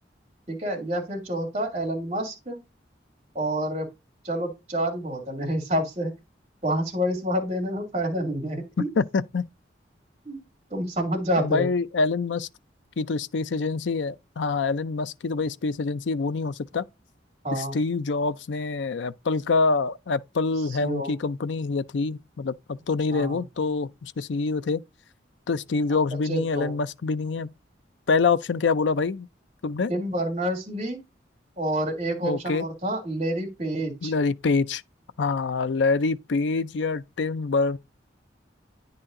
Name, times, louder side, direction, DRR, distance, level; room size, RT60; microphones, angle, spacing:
voice 1, 0.5-2.6 3.3-3.9 4.2-6.1 6.6-8.9 10.3-10.4 10.7-11.7 17.4-17.8 20.7-21.1 23.1-23.4 26.2-26.7 29.9-31.0 31.6-34.1, right 1 dB, 35° right, 2.7 m, -28 dB
voice 2, 8.8-9.5 11.4-12.5 13.0-16.9 17.5-24.8 25.5-27.5 28.1-29.3 29.6-29.9 32.2-32.6 34.0-34.8 35.2-37.8, left 4 dB, 80° left, 0.5 m, -26 dB
9.8 x 4.2 x 3.7 m
head